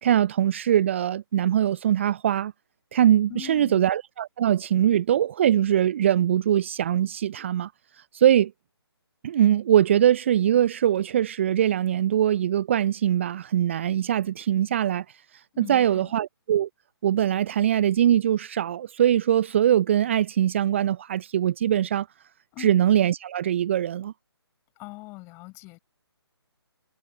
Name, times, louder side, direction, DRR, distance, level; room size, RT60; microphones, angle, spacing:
voice 1, 0.0-2.5 2.9-8.5 9.2-16.7 17.0-22.1 22.6-24.1, right 10 dB, 30° right, 0.5 m, -22 dB
voice 2, 3.3-3.8 15.5-16.1 22.5-22.7 24.8-25.8, left 24 dB, 20° left, 6.3 m, -41 dB
figure-of-eight pair, 145°, 14 cm